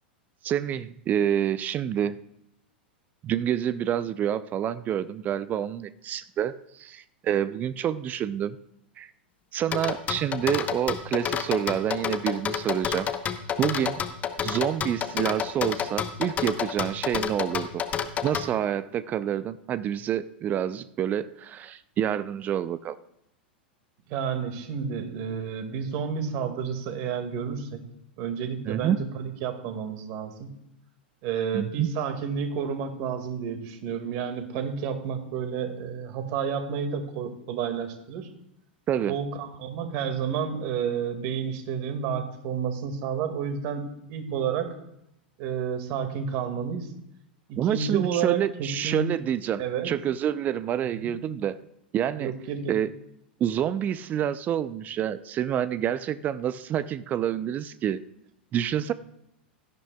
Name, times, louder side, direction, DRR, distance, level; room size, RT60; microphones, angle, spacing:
voice 1, 0.4-2.2 3.2-8.6 9.0-9.1 9.5-13.1 13.6-14.0 14.4-17.8 18.2-23.0 28.7-29.0 31.5-31.9 38.9-39.2 47.6-51.6 51.9-52.3 52.7-52.9 53.4-58.0 58.5-58.9, right 10 dB, 30° right, 15 dB, 0.5 m, -28 dB
sound 1, 9.7-18.5, left 8 dB, 25° left, 1.0 m, -29 dB
voice 2, 24.1-27.8 28.2-30.5 31.2-38.3 39.1-44.7 45.4-46.9 47.5-49.1 49.6-49.9 51.0-51.1 52.2-52.7, right 7 dB, 45° right, 6 dB, 2.0 m, -30 dB
17.0 x 12.5 x 2.3 m, 0.78 s
figure-of-eight pair, 95°, 6 cm